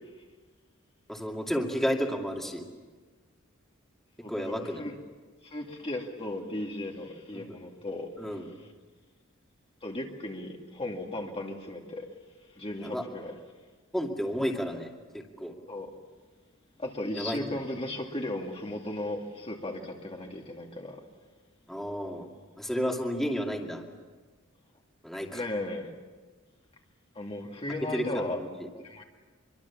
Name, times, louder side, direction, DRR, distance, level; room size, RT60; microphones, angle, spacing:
voice 1, 1.1-2.6 4.3-4.8 7.3-7.5 8.2-8.5 12.8-13.0 13.9-15.5 17.1-17.5 21.7-22.3 22.6-23.8 25.0-25.4 27.9-28.7, equal, ahead, 0 dB, 2.5 m, -32 dB
voice 2, 4.2-5.0 5.4-8.1 9.8-12.1 12.6-13.3 15.7-15.9 16.8-21.0 25.3-25.9 27.1-28.4 28.7-29.0, left 1 dB, 30° left, 0 dB, 2.2 m, -36 dB
25.5 x 23.5 x 7.2 m, 1.4 s
head